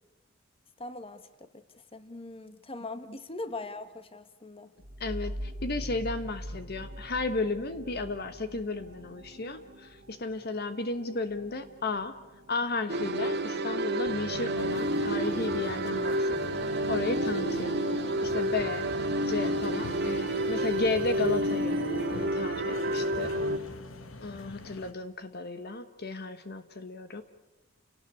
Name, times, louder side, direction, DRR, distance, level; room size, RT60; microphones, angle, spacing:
voice 1, 0.8-1.6 1.9-4.7, left 2 dB, 30° left, 11 dB, 1.6 m, -41 dB
sound 1, 4.8-14.1, equal, 75° right, 2.5 m, -43 dB
voice 2, 5.0-12.1 12.5-16.6 16.9-17.8 18.2-18.9 19.3-21.8 22.1-23.3 24.2-27.2, left 3 dB, 50° left, 9 dB, 1.2 m, -34 dB
sound 2, 12.9-23.6, right 1 dB, 60° right, 2.0 m, -29 dB
sound 3, 14.6-24.9, left 2 dB, 80° left, 1.6 m, -45 dB
30.0 x 18.5 x 8.4 m, 1.0 s
head